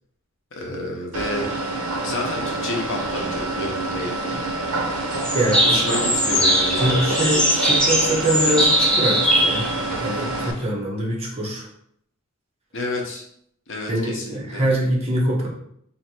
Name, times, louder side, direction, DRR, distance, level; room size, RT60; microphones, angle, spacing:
voice 1, 0.5-1.5 2.0-4.2 5.6-7.2 12.7-13.2 13.7-14.6, left 2 dB, 60° left, 0 dB, 0.9 m, -29 dB
sound 1, 1.1-10.5, right 2 dB, 75° right, 0.6 m, -27 dB
sound 2, 4.9-10.6, equal, 5° left, 0.8 m, -21 dB
voice 2, 5.3-5.8 6.8-9.7 10.0-11.7 13.9-15.5, right 1 dB, 30° right, -4 dB, 1.1 m, -24 dB
3.2 x 2.8 x 4.4 m, 0.69 s
head